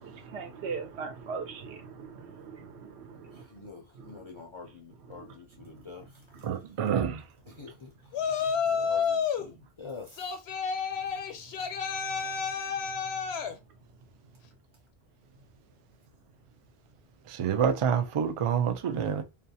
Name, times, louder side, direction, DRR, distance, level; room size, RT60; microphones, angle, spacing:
voice 1, 0.0-3.5 4.0-4.2 5.1-5.3 5.7-5.8 6.3-6.5 8.8-8.9, right 5 dB, 85° right, 1.0 m, -40 dB
voice 2, 3.3-6.5 7.5-8.2 8.6-10.4, left 4 dB, 55° left, 0.3 m, -47 dB
voice 3, 6.4-7.3 12.1-12.3 17.3-19.2, right 7 dB, 55° right, 0.3 m, -28 dB
Yell, 8.1-9.5 10.2-13.5, left 6 dB, 80° left, 0.8 m, -30 dB
2.4 x 2.3 x 2.6 m
omnidirectional pair, 1.1 m